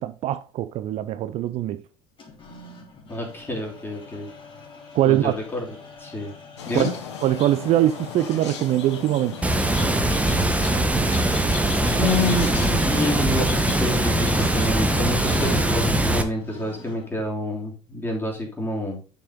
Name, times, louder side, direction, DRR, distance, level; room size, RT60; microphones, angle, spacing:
voice 1, 0.0-1.8 4.9-5.3 6.7-6.9 7.2-9.5, right 13 dB, 45° right, 0.4 m, -22 dB
sound 1, 2.2-17.2, left 3 dB, 35° left, 3.0 m, -41 dB
voice 2, 3.1-4.3 5.1-5.7 6.0-6.3 6.6-6.9 11.9-19.0, left 1 dB, 15° left, 3.5 m, -28 dB
sound 2, 6.6-15.7, left 7 dB, 80° left, 1.0 m, -36 dB
Water, 9.4-16.2, right 1 dB, 10° right, 1.1 m, -22 dB
6.5 x 5.9 x 3.7 m
hypercardioid pair, 65°, 15 cm